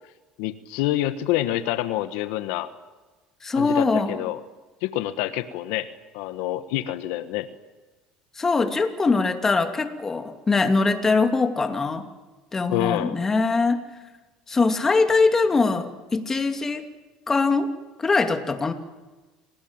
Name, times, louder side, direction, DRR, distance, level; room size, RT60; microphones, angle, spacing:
voice 1, 0.4-2.7 3.5-4.4 4.8-7.5 12.7-13.2, left 14 dB, 80° left, 11 dB, 1.4 m, -27 dB
voice 2, 3.4-4.2 8.4-12.1 12.5-13.8 14.5-16.8 17.3-17.7 18.0-18.7, left 4 dB, 20° left, 7 dB, 2.6 m, -22 dB
28.0 x 19.5 x 8.9 m, 1.2 s
cardioid pair, 120°, 2 cm